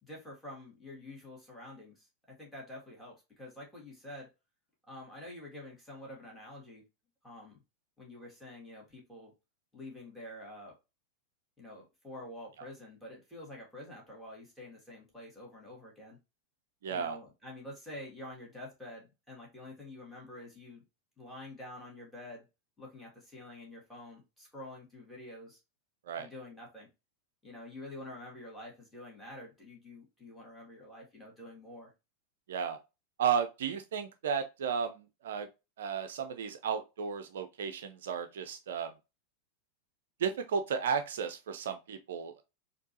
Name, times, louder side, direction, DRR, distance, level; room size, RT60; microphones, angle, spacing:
voice 1, 0.0-4.3 4.9-6.8 7.2-7.6 8.0-9.3 9.7-10.7 11.6-16.2 16.9-20.8 21.2-22.5 22.8-25.6 26.2-26.9 27.4-31.9, left 1 dB, 5° left, 2.0 m, -48 dB
voice 2, 16.8-17.2 26.1-26.3 32.5-32.8 33.2-35.5 35.8-38.9 40.2-42.4, right 7 dB, 60° right, 0.4 m, -34 dB
4.4 x 2.7 x 2.7 m
figure-of-eight pair, 90°, 0 cm